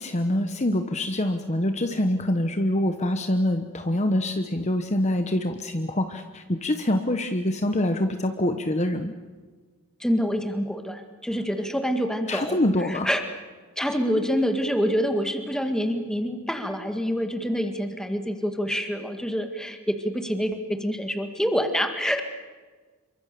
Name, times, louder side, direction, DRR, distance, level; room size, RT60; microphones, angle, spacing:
voice 1, 0.0-9.1 12.3-13.1, left 1 dB, 30° left, 7 dB, 1.1 m, -25 dB
voice 2, 10.0-13.2 13.8-22.2, equal, 5° left, 6 dB, 1.9 m, -26 dB
27.0 x 24.0 x 6.9 m, 1.4 s
head